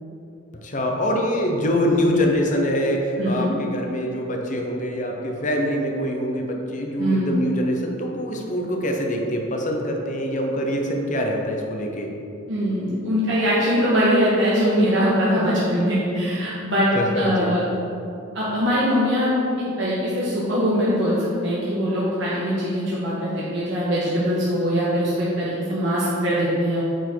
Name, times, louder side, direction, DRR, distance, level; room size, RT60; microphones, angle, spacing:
voice 1, 0.6-12.1 16.9-17.5, equal, 35° left, 1 dB, 0.8 m, -24 dB
voice 2, 3.2-3.5 7.0-7.3 12.5-16.9 17.1-17.6 18.3-19.3 19.8-26.8, equal, 65° right, -8 dB, 1.4 m, -22 dB
8.9 x 4.4 x 4.6 m, 2.7 s
head